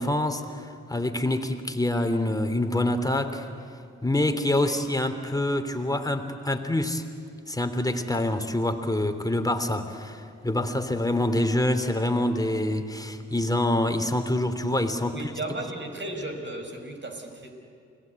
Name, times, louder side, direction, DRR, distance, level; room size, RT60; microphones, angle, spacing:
voice 1, 0.0-3.5 4.0-7.0 7.5-15.3, left 1 dB, 10° left, 7 dB, 3.1 m, -26 dB
voice 2, 4.4-4.9 15.1-17.5, right 2 dB, 40° right, 4 dB, 5.8 m, -35 dB
29.0 x 19.5 x 9.6 m, 2.4 s
supercardioid pair, 45°, 30 cm